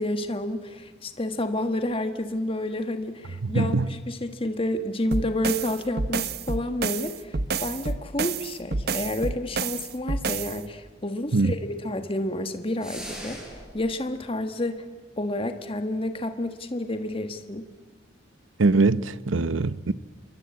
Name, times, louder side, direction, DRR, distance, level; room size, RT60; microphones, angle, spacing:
voice 1, 0.0-13.4 13.7-14.8 15.2-17.7, left 1 dB, 30° left, 1.6 m, -30 dB
voice 2, 3.4-3.9 11.3-11.5 18.6-19.9, right 3 dB, 90° right, 0.8 m, -22 dB
sound 1, 5.1-10.6, right 4 dB, 55° right, 0.9 m, -29 dB
sound 2, 12.8-13.8, equal, 5° right, 6.8 m, -39 dB
28.0 x 22.5 x 8.6 m
head